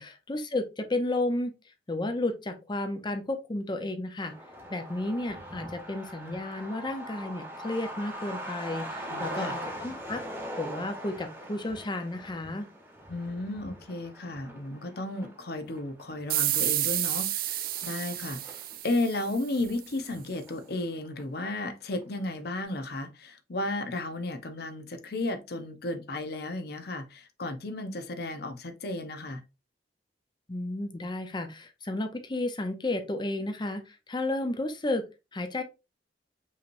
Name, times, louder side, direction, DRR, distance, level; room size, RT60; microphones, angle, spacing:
voice 1, 0.0-1.5 1.9-4.3 4.7-10.2 10.6-12.7 30.5-35.0 35.3-35.6, left 2 dB, 25° left, 0.7 m, -32 dB
Truck, 4.2-19.4 19.7-19.8 20.0-20.9 21.2-21.3 21.7-22.0, equal, 10° right, 1.1 m, -42 dB
voice 2, 9.1-9.6 13.1-29.4, left 2 dB, 60° left, 0.7 m, -34 dB
sound 1, 16.3-19.6, right 14 dB, 55° right, 0.4 m, -30 dB
5.6 x 3.0 x 2.6 m
head